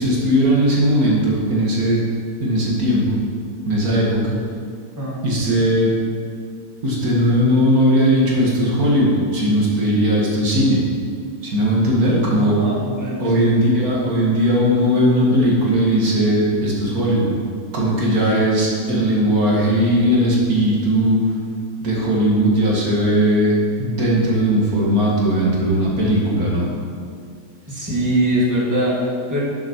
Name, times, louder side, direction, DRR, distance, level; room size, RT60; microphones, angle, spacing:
voice 1, 0.0-2.0 2.4-3.2 3.7-4.4 5.2-6.0 6.8-10.8 11.4-12.6 13.2-17.3 17.7-21.3 21.8-23.5 23.8-26.7, equal, 70° right, -4 dB, 2.4 m, -18 dB
voice 2, 12.3-13.6 19.0-19.2 27.7-29.4, right 1 dB, 10° right, -5 dB, 2.1 m, -22 dB
12.0 x 7.4 x 4.6 m, 2.2 s
omnidirectional pair, 1.6 m